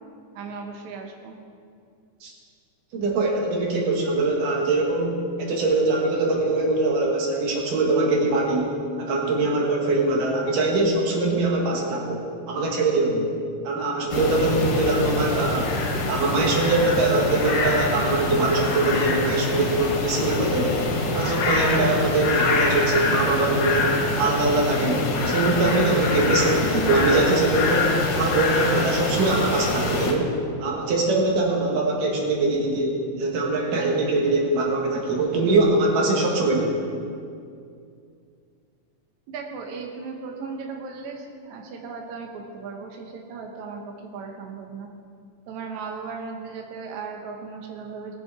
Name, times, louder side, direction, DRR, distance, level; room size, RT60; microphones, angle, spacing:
voice 1, 0.3-1.4 39.3-44.9 45.5-48.2, right 4 dB, 70° right, 1 dB, 2.3 m, -36 dB
voice 2, 2.9-13.3 13.6-15.7 16.1-36.8, right 2 dB, 90° right, -1 dB, 3.3 m, -23 dB
sound 1, 14.1-30.1, left 3 dB, 60° left, 2.5 m, -25 dB
19.0 x 7.5 x 4.8 m, 2.4 s
omnidirectional pair, 3.7 m